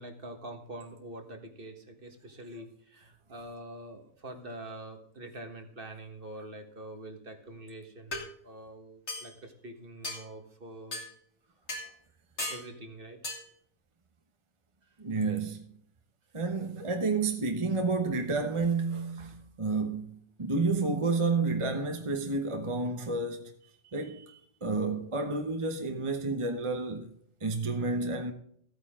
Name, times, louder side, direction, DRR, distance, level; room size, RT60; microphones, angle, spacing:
voice 1, 0.0-11.0 11.8-11.9 12.5-13.2, right 1 dB, 50° right, 1.8 m, -45 dB
sound 1, 7.5-7.6 8.1-8.3 9.1-9.3 10.0-10.2 10.9-11.1 11.7-11.9 12.4-12.7 13.2-13.4, left 2 dB, 70° left, 3.0 m, -36 dB
voice 2, 15.0-15.6 16.3-23.5 23.8-27.1 27.4-28.3, right 3 dB, 30° right, 1.1 m, -30 dB
14.5 x 9.2 x 3.7 m
omnidirectional pair, 1.2 m